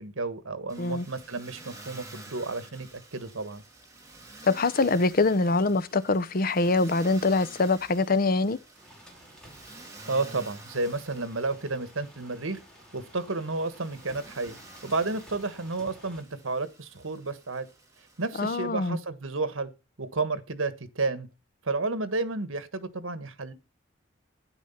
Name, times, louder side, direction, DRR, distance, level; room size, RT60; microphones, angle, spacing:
voice 1, 0.0-3.6 10.0-12.6 12.9-14.6 14.8-17.7 18.2-19.7 20.0-21.3 21.6-23.5, right 3 dB, 80° right, 1.5 m, -31 dB
Motor vehicle (road), 0.7-18.6, right 2 dB, 15° right, 3.3 m, -50 dB
voice 2, 4.5-8.6 18.4-19.0, left 3 dB, 45° left, 0.7 m, -24 dB
sound 1, 8.1-16.2, equal, 5° left, 3.2 m, -53 dB
12.0 x 10.0 x 5.7 m
head